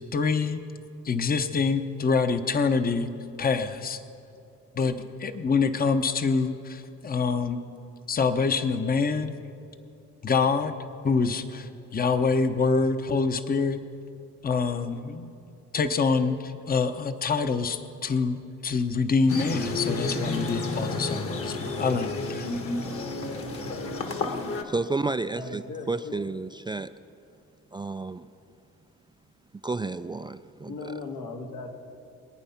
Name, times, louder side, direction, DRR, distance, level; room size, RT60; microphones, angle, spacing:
voice 1, 0.1-0.6 1.0-3.1 3.4-4.0 4.7-4.9 5.2-7.6 8.1-9.3 10.2-10.7 11.0-13.8 14.4-15.3 15.7-22.6, left 4 dB, 30° left, 9 dB, 0.8 m, -26 dB
sound 1, 19.3-24.6, left 3 dB, 50° left, 1.6 m, -31 dB
voice 2, 24.6-26.9 27.7-28.3 29.6-30.9, right 3 dB, 15° right, 11 dB, 0.3 m, -31 dB
voice 3, 25.3-26.3 30.6-31.7, left 3 dB, 85° left, 2 dB, 2.0 m, -37 dB
23.5 x 9.0 x 5.8 m, 2.6 s
cardioid pair, 90°, 30 cm